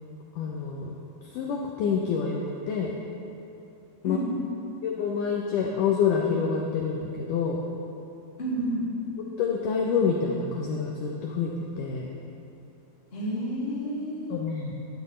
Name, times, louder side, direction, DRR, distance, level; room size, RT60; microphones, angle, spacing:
voice 1, 0.4-0.9 1.2-3.0 4.0-4.2 4.8-7.6 9.2-11.5 11.8-12.1 14.3-14.9, left 6 dB, 85° left, 0 dB, 1.8 m, -27 dB
voice 2, 4.0-4.4 8.4-8.9 13.1-14.4, equal, 25° left, -6 dB, 1.3 m, -30 dB
12.0 x 12.0 x 3.2 m, 2.8 s
omnidirectional pair, 4.6 m